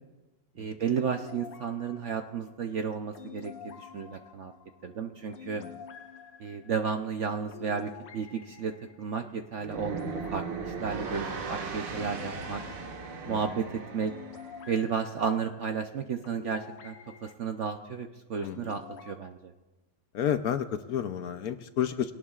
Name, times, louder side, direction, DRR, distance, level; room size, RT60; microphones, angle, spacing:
voice 1, 0.6-4.5 4.8-5.6 6.4-12.6 13.3-13.7 13.9-14.1 14.7-17.0 17.2-19.5, right 6 dB, 60° right, 5 dB, 0.8 m, -33 dB
sound 1, 1.0-17.3 18.4-19.2, left 7 dB, 85° left, 1.7 m, -49 dB
sound 2, 9.6-14.7, right 5 dB, 90° right, 2.0 m, -38 dB
voice 2, 18.4-18.7 20.1-22.1, left 9 dB, 65° left, 9 dB, 1.0 m, -31 dB
23.5 x 18.0 x 2.4 m, 1.1 s
omnidirectional pair, 1.9 m